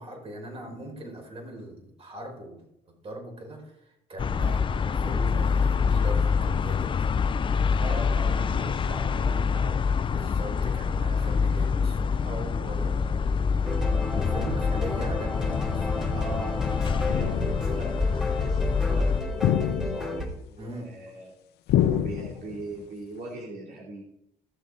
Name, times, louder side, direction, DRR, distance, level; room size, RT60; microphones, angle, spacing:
voice 1, 0.0-2.6 3.0-7.1 7.8-8.0 10.0-13.3 14.1-15.9 20.6-20.9, right 1 dB, 35° right, 1 dB, 4.9 m, -40 dB
sound 1, 4.2-19.2, left 5 dB, 30° left, 0.5 m, -26 dB
voice 2, 7.8-9.9 10.2-10.3 14.4-14.6 16.1-21.3 21.8-24.0, right 1 dB, 60° right, -3 dB, 2.7 m, -40 dB
sound 2, 13.6-20.3, left 2 dB, 5° right, 2.8 m, -32 dB
sound 3, 15.5-15.9 17.1-17.8 19.4-20.3 21.7-22.6, left 11 dB, 75° left, 0.7 m, -27 dB
17.0 x 7.4 x 3.9 m, 0.79 s
cardioid pair, 110°, 17 cm